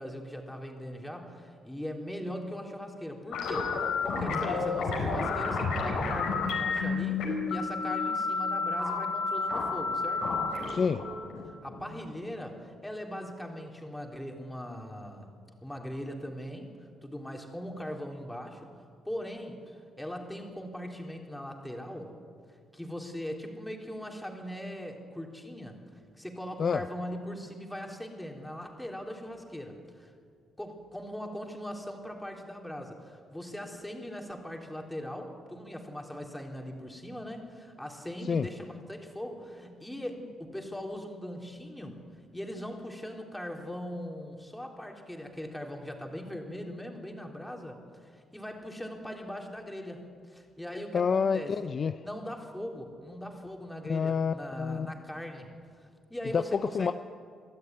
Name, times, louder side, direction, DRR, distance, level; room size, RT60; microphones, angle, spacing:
voice 1, 0.0-10.3 11.5-15.3 15.6-16.7 17.0-22.1 22.7-25.8 26.1-30.1 30.6-42.0 42.3-51.6 52.0-55.5 55.8-56.9, equal, 5° left, 1 dB, 3.5 m, -40 dB
sound 1, 3.3-12.2, left 4 dB, 85° left, 5.2 m, -31 dB
voice 2, 10.7-11.0 26.6-26.8 38.3-38.5 50.9-51.9 53.9-54.9 56.3-56.9, left 6 dB, 45° left, 11 dB, 0.6 m, -28 dB
23.5 x 13.5 x 9.6 m, 2.2 s
cardioid pair, 90°, 0 cm